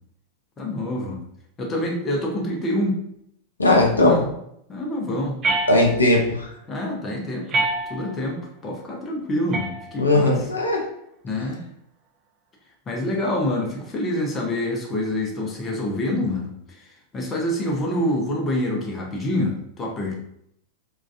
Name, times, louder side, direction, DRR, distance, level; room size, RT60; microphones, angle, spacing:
voice 1, 0.6-1.2 1.6-3.0 4.0-4.3 4.7-5.4 6.7-7.6 7.9-8.4 8.6-10.5 11.2-11.6 12.9-20.2, left 1 dB, 20° left, 0 dB, 0.5 m, -26 dB
voice 2, 3.6-4.2 5.7-6.5 10.0-10.8, left 2 dB, 75° left, 0 dB, 0.4 m, -18 dB
sound 1, 5.4-6.3 7.5-8.3 9.5-10.3, right 2 dB, 30° right, 0.4 m, -27 dB
2.3 x 2.3 x 2.4 m, 0.74 s
figure-of-eight pair, 90°, 0 cm